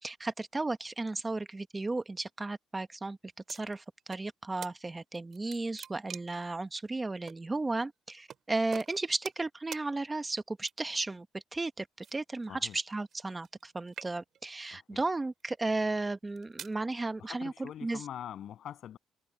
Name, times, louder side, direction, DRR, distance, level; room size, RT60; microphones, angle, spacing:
voice 1, 0.0-3.2 3.5-11.9 12.1-18.0, right 2 dB, 20° right, 1.1 m, -34 dB
sound 1, 3.5-4.3 4.6-4.7 5.2-6.5 7.3-7.4 8.3-8.4 8.7-9.5 9.7-9.9 10.6-11.0 12.0-13.6 13.9-14.5 15.2-15.4 16.1-16.8, right 8 dB, 60° right, 3.6 m, -46 dB
voice 2, 14.7-15.0 17.2-19.0, left 10 dB, 70° left, 7.5 m, -44 dB
cardioid pair, 90°, 0 cm